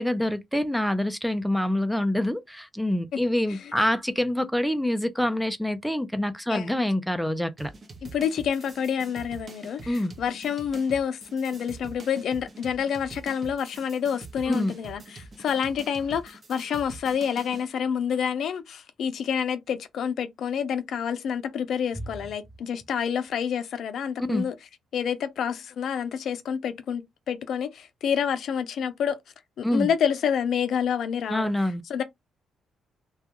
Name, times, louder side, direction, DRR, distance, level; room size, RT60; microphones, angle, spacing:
voice 1, 0.0-7.7 9.9-10.1 14.5-14.7 24.3-24.5 29.6-29.9 31.3-31.8, left 1 dB, ahead, 0.4 m, -26 dB
voice 2, 3.5-3.8 6.5-6.7 8.0-24.5 24.9-29.2 29.6-31.5 31.9-32.0, left 7 dB, 65° left, 0.4 m, -28 dB
sound 1, 7.6-17.7, right 3 dB, 35° right, 0.8 m, -45 dB
2.3 x 2.2 x 2.8 m
cardioid pair, 90°, 0 cm